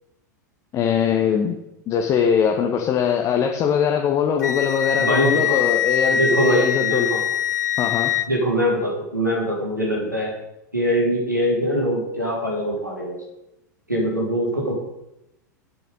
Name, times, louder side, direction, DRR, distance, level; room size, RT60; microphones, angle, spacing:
voice 1, 0.7-1.6 1.9-7.1 7.8-8.1, left 8 dB, 30° left, 3 dB, 0.9 m, -21 dB
Wind instrument woodwind instrument, 4.4-8.3, left 8 dB, 70° left, 0.7 m, -23 dB
voice 2, 4.9-5.6 6.0-7.2 8.3-10.3 10.7-13.2 13.9-14.7, equal, 90° right, -3 dB, 3.2 m, -23 dB
8.2 x 7.1 x 5.3 m, 0.85 s
figure-of-eight pair, 85°, 10 cm